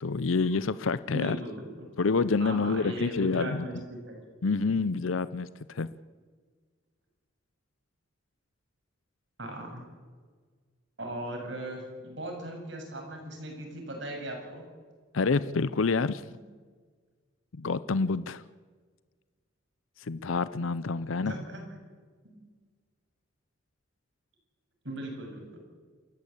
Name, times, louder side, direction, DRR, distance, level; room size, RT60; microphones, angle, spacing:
voice 1, 0.0-1.4 2.0-3.7 4.4-5.9 15.1-16.3 17.6-18.4 20.0-21.4, left 4 dB, 85° left, 16 dB, 0.6 m, -28 dB
voice 2, 1.1-1.9 2.4-4.2 9.4-9.8 11.0-14.6 21.3-21.6 24.8-25.6, right 1 dB, 65° right, 2 dB, 7.2 m, -38 dB
28.5 x 15.0 x 8.5 m, 1.5 s
head